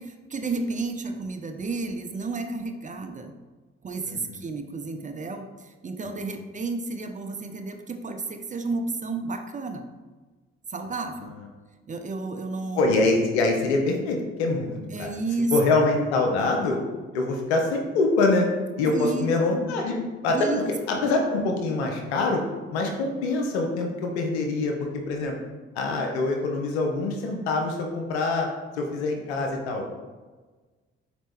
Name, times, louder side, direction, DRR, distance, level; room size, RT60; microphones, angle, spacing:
voice 1, 0.0-3.3 3.8-9.9 10.7-11.3 11.9-12.9 14.9-15.5 18.9-19.7 20.3-21.2, right 3 dB, 25° right, 6 dB, 0.5 m, -32 dB
voice 2, 4.1-4.4 12.7-15.1 15.5-16.8 17.1-18.5 18.8-20.4 20.7-22.4 22.7-25.3 25.8-28.5 28.8-30.0, left 3 dB, 85° left, 2 dB, 0.6 m, -25 dB
4.1 x 3.0 x 3.4 m, 1.3 s
hypercardioid pair, 40°, 32 cm